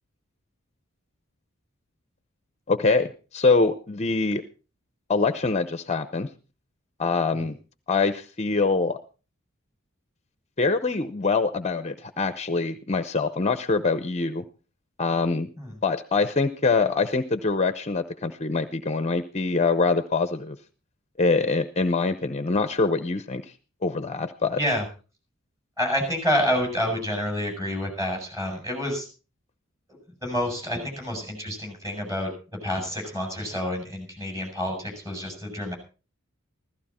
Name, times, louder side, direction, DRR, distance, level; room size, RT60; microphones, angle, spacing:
voice 1, 2.7-4.4 5.1-6.3 7.0-7.6 7.9-9.0 10.6-14.4 15.0-15.5 15.8-20.6 21.2-23.4 23.8-24.6, left 4 dB, 30° left, 10 dB, 0.7 m, -24 dB
voice 2, 24.6-24.9 25.8-29.1 30.2-32.3 32.6-35.7, equal, 15° right, 2 dB, 7.7 m, -28 dB
16.0 x 14.5 x 4.3 m, 0.36 s
head